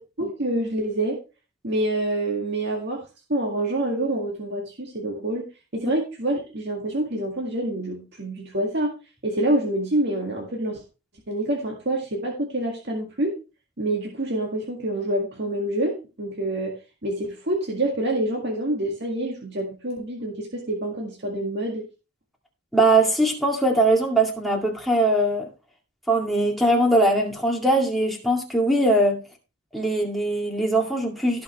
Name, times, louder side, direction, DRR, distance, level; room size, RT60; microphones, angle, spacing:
voice 1, 0.2-1.2 1.6-3.0 3.3-5.4 5.7-9.0 9.2-10.8 11.3-13.3 13.8-16.7 17.0-21.8, right 1 dB, 55° right, 1.9 m, -27 dB
voice 2, 22.7-25.4 26.1-29.2 29.7-31.4, right 1 dB, ahead, 2.2 m, -21 dB
17.0 x 5.7 x 3.2 m
head